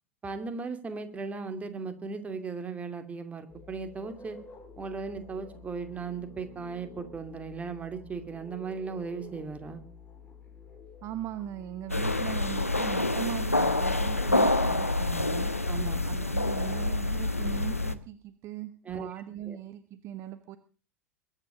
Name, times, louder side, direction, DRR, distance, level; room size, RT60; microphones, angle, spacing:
voice 1, 0.2-4.4 4.8-9.8 15.7-16.0 18.9-19.1 19.5-19.6, right 5 dB, 20° right, 8 dB, 2.6 m, -37 dB
sound 1, 3.5-17.7, left 5 dB, 25° left, 4.2 m, -50 dB
voice 2, 11.0-15.5 16.0-20.6, right 12 dB, 40° right, 13 dB, 1.1 m, -39 dB
sound 2, 11.9-17.9, left 2 dB, 90° left, 1.1 m, -27 dB
22.0 x 10.0 x 5.1 m, 0.39 s
figure-of-eight pair, 85°, 7 cm